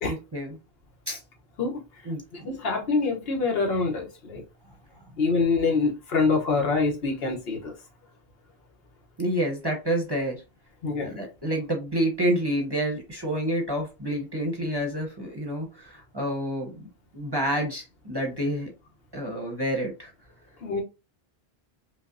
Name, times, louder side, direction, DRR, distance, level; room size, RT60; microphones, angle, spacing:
voice 1, 0.1-0.5 1.1-1.2 2.1-2.5 9.2-10.4 11.0-16.9 17.1-18.7 19.1-20.1, right 1 dB, 25° right, 0.7 m, -28 dB
voice 2, 1.6-4.4 5.2-7.7 10.8-11.2 20.6-20.8, left 4 dB, 70° left, 1.2 m, -26 dB
5.3 x 2.1 x 2.5 m
omnidirectional pair, 1.1 m